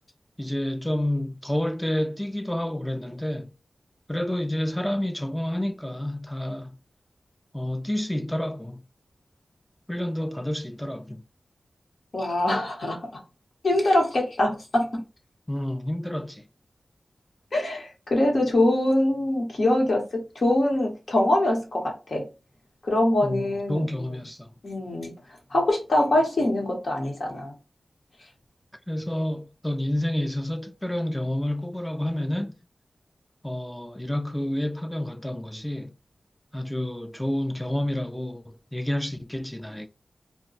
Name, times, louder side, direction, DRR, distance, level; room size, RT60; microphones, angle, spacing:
voice 1, 0.4-3.5 4.1-6.8 7.5-8.8 9.9-11.2 15.5-16.4 23.2-24.5 28.9-32.6 33.4-35.9 36.5-39.9, left 1 dB, 5° left, 0.4 m, -29 dB
voice 2, 12.1-13.1 13.6-15.0 17.5-22.3 22.8-23.9 24.6-25.2 25.5-27.5, left 1 dB, 65° left, 1.1 m, -23 dB
2.2 x 2.2 x 3.9 m
wide cardioid pair, 95°, 0 cm